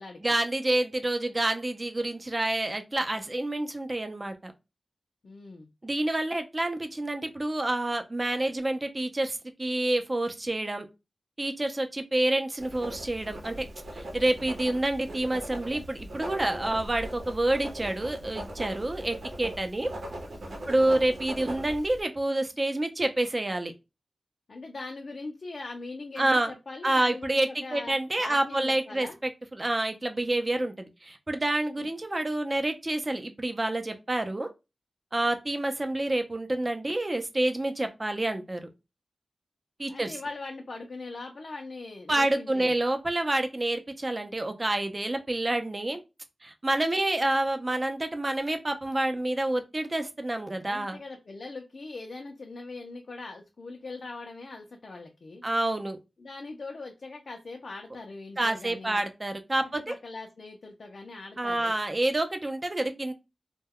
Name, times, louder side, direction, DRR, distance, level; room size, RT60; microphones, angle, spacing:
voice 1, 0.2-4.5 5.8-10.9 11.4-13.7 13.9-19.9 20.7-23.7 26.2-26.5 26.8-34.5 35.1-38.7 39.8-40.2 42.1-46.0 46.4-51.0 55.4-56.0 58.4-60.0 61.4-63.1, right 1 dB, 30° right, 7 dB, 0.5 m, -28 dB
voice 2, 5.2-5.7 20.6-21.0 24.5-29.2 31.8-31.9 39.9-42.8 50.7-55.4 56.2-59.0 59.6-61.8, left 3 dB, 65° left, 2 dB, 0.5 m, -41 dB
Writing, 12.6-22.0, right 1 dB, 75° right, 0.8 m, -40 dB
2.2 x 2.2 x 3.5 m, 0.26 s
wide cardioid pair, 65°, 0 cm